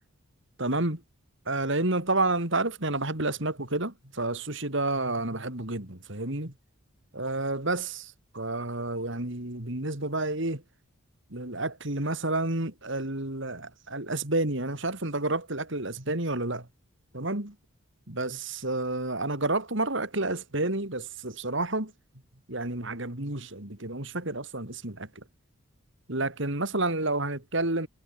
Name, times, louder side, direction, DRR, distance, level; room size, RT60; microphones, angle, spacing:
voice 1, 0.6-1.0 1.5-6.5 7.1-10.6 11.3-16.7 17.1-17.5 18.1-21.9 22.5-25.2 26.1-27.9, right 2 dB, 55° right, 3.2 m, -30 dB
head